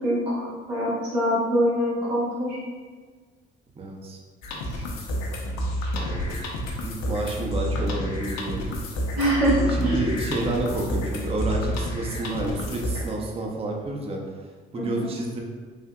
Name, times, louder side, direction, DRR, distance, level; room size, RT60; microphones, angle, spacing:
voice 1, 0.0-2.6 9.1-10.0 14.7-14.9, equal, 85° right, -9 dB, 1.1 m, -24 dB
voice 2, 3.8-4.2 4.5-4.7 5.9-6.4 6.8-8.8 9.7-14.2 14.7-15.4, right 2 dB, 20° right, 0 dB, 0.5 m, -30 dB
sound 1, 4.4-13.1, equal, 65° left, 0.5 m, -29 dB
3.4 x 2.6 x 2.2 m, 1.5 s
hypercardioid pair, 45°, 29 cm